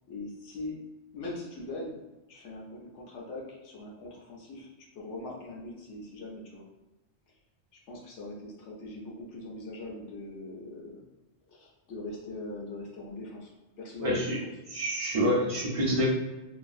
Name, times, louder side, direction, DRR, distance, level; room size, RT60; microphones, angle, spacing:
voice 1, 0.1-0.8 1.1-2.0 2.3-6.6 7.9-11.0 11.5-14.3, left 2 dB, 85° left, -2 dB, 1.0 m, -41 dB
voice 2, 14.0-14.4 14.7-16.1, equal, 45° right, -3 dB, 0.4 m, -27 dB
2.9 x 2.3 x 2.5 m, 1.1 s
omnidirectional pair, 1.2 m